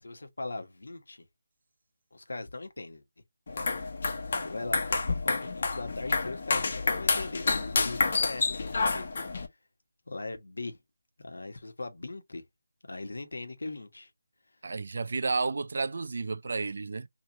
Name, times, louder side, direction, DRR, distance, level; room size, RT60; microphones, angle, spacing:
voice 1, 0.0-1.2 2.1-3.0 4.3-9.1 10.1-10.8 11.2-12.4 12.9-14.1, left 3 dB, 75° left, 1.3 m, -39 dB
sound 1, 3.5-9.5, left 3 dB, 45° left, 1.0 m, -29 dB
voice 2, 14.6-17.1, right 4 dB, 55° right, 0.4 m, -31 dB
3.1 x 3.1 x 4.0 m
figure-of-eight pair, 165°, 0 cm